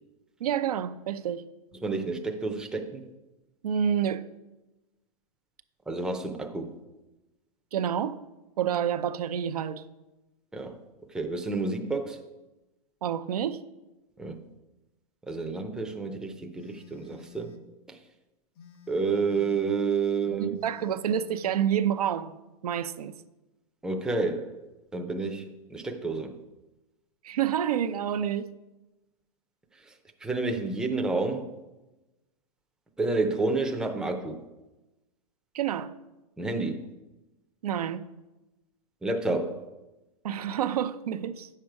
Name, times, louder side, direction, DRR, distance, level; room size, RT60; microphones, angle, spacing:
voice 1, 0.4-1.4 3.6-4.2 7.7-8.2 8.6-9.8 13.0-13.6 20.3-22.3 22.6-23.2 27.2-28.5 35.5-35.9 37.6-38.1 40.2-41.5, right 9 dB, 80° right, 0.6 m, -28 dB
voice 2, 1.7-3.0 5.9-6.8 10.5-10.8 11.1-12.2 14.2-14.4 15.3-17.6 17.9-18.0 18.9-20.5 23.8-24.6 24.9-26.4 29.9-30.0 30.2-31.5 33.0-34.4 36.4-36.9 39.0-39.6, right 3 dB, 5° right, 0.6 m, -30 dB
Telephone, 16.6-17.7 18.6-19.7 20.6-21.7, left 6 dB, 45° left, 1.0 m, -51 dB
8.6 x 6.6 x 4.7 m
hypercardioid pair, 135°, 19 cm